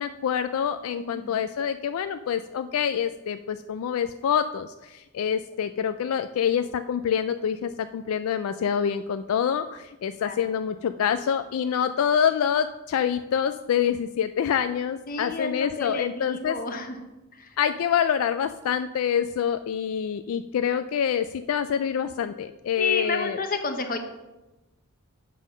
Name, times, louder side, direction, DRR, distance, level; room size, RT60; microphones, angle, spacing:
voice 1, 0.0-16.6 17.6-23.4, left 8 dB, 75° left, 11 dB, 0.3 m, -26 dB
voice 2, 1.0-1.4 10.2-10.4 15.1-17.0 17.4-17.5 22.7-24.0, left 3 dB, 40° left, 6 dB, 1.0 m, -30 dB
7.5 x 5.6 x 6.1 m, 1.0 s
head